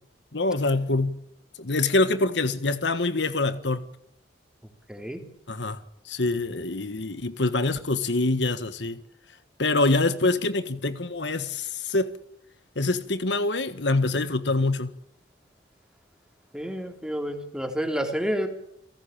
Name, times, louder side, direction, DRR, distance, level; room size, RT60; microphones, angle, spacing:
voice 1, 0.3-1.2 1.6-3.9 5.5-5.8 6.0-9.0 9.6-12.2 12.7-14.9, left 2 dB, 70° left, 1.6 m, -25 dB
voice 2, 4.9-5.2 16.5-18.5, equal, 5° right, 3.8 m, -29 dB
30.0 x 18.0 x 8.9 m
head